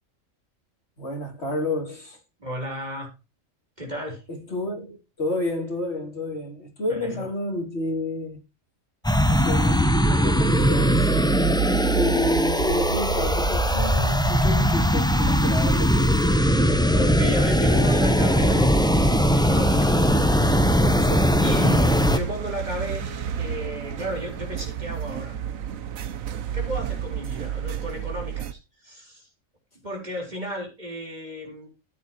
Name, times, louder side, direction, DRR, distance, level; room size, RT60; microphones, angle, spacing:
voice 1, 1.0-2.2 4.3-8.4 9.3-11.1 11.9-16.1 21.0-21.4, left 1 dB, 55° left, 3.8 m, -30 dB
voice 2, 2.4-3.1 3.8-4.2 6.9-7.3 16.9-20.1 20.4-20.6 21.4-25.4 26.5-29.3 29.8-31.7, equal, 35° right, 4.5 m, -33 dB
sound 1, 9.0-22.2, equal, 5° left, 0.6 m, -20 dB
sound 2, 9.3-28.5, right 9 dB, 85° right, 1.3 m, -31 dB
14.5 x 9.2 x 3.0 m
omnidirectional pair, 1.4 m